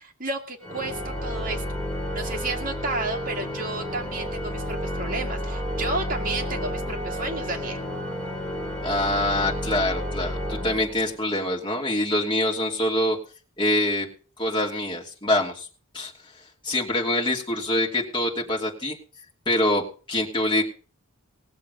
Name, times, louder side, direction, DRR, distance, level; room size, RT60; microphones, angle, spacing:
voice 1, 0.0-1.6 2.1-7.8, right 2 dB, 40° right, 2 dB, 2.3 m, -32 dB
Organ, 0.6-11.4, equal, 5° left, 3.0 m, -31 dB
voice 2, 8.8-13.2 13.6-14.1 14.4-15.7 15.9-16.1 16.6-19.0 19.5-20.6, left 1 dB, 20° left, -1 dB, 3.0 m, -25 dB
19.0 x 7.4 x 5.3 m, 0.38 s
head